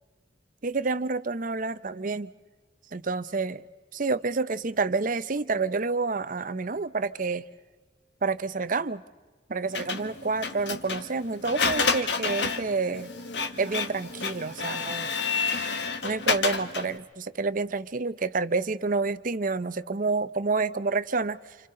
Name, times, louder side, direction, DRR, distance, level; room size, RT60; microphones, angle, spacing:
voice 1, 0.6-2.3 2.9-3.6 3.9-7.5 8.2-9.0 9.5-13.1 13.6-15.1 16.0-21.6, right 4 dB, 45° right, 0.7 m, -29 dB
Printer, 9.7-17.0, left 5 dB, 65° left, 1.5 m, -29 dB
29.5 x 28.0 x 3.8 m
head